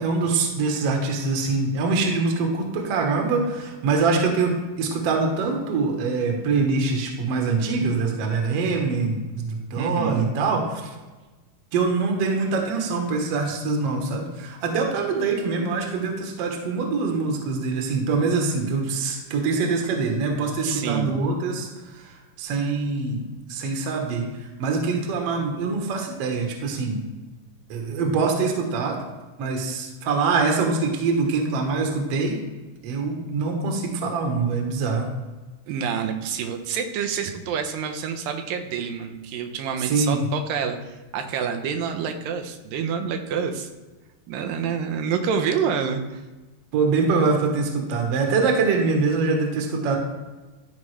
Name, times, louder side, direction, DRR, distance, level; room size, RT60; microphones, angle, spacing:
voice 1, 0.0-10.9 11.7-21.7 21.9-23.2 23.5-24.3 24.6-27.0 27.7-29.0 29.4-32.4 32.8-35.1 39.8-40.2 46.7-50.0, right 4 dB, 60° right, 2 dB, 1.7 m, -24 dB
voice 2, 9.8-10.2 20.6-21.2 35.7-43.7 44.3-46.2, right 7 dB, 90° right, 5 dB, 2.5 m, -27 dB
12.5 x 4.9 x 3.2 m, 1.2 s
omnidirectional pair, 3.9 m